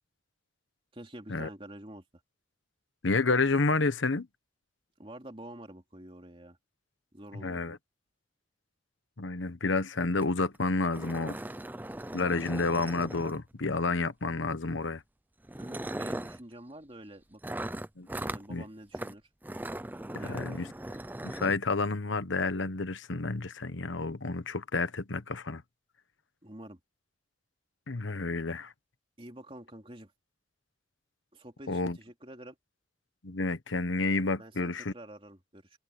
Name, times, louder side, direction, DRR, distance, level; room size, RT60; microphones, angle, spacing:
voice 1, 0.9-2.0 5.0-6.6 7.1-7.6 15.6-17.6 18.1-19.2 20.1-20.7 26.4-26.8 29.2-30.1 31.3-32.6 34.4-35.8, right 1 dB, 30° right, 3.2 m, -48 dB
voice 2, 3.0-4.3 7.3-7.8 9.2-11.4 12.1-15.0 18.0-18.1 18.5-18.6 20.1-20.7 21.2-25.6 27.9-28.7 31.7-32.0 33.2-34.9, left 3 dB, 90° left, 1.2 m, -30 dB
sound 1, 10.2-10.3 10.5-10.6 10.9-13.7 14.7-14.9 15.4-16.4 17.4-18.5 18.9-19.1 19.4-21.6, right 1 dB, 10° right, 0.5 m, -39 dB
head